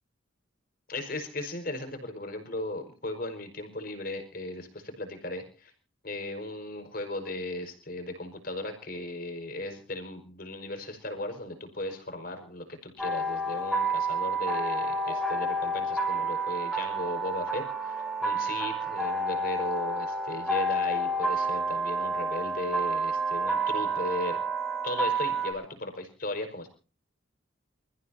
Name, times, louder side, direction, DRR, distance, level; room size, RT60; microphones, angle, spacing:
voice 1, 0.9-5.7 6.0-24.4 24.8-26.7, left 2 dB, 45° left, 5 dB, 5.2 m, -37 dB
sound 1, 13.0-25.5, right 2 dB, ahead, 4.6 m, -29 dB
28.5 x 15.0 x 2.8 m, 0.36 s
head